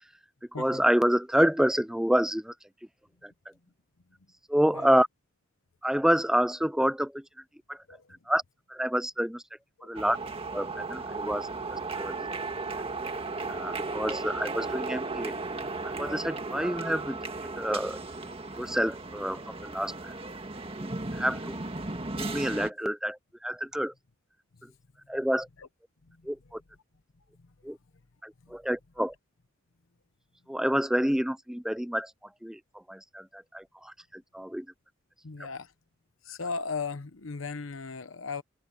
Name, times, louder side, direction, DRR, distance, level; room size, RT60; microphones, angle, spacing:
voice 1, 0.6-2.5 3.2-3.3 4.5-5.1 5.8-7.2 7.7-7.8 8.3-8.4 8.7-9.4 9.8-10.2 10.5-12.2 13.0-13.1 13.5-15.4 15.8-18.0 18.6-20.1 20.8-21.6 22.2-23.9 25.1-25.5 26.2-26.6 27.6-27.8 28.2-29.1 30.5-32.1 32.4-32.6 32.9-34.7, equal, 5° right, 0.6 m, -28 dB
voice 2, 7.9-8.2 9.8-10.0 25.6-25.7 26.0-26.3 27.4-27.5 28.4-28.5 35.2-35.7 36.2-38.4, left 4 dB, 85° left, 0.9 m, -37 dB
sound 1, 10.0-22.7, right 3 dB, 30° right, 1.8 m, -35 dB
open air
head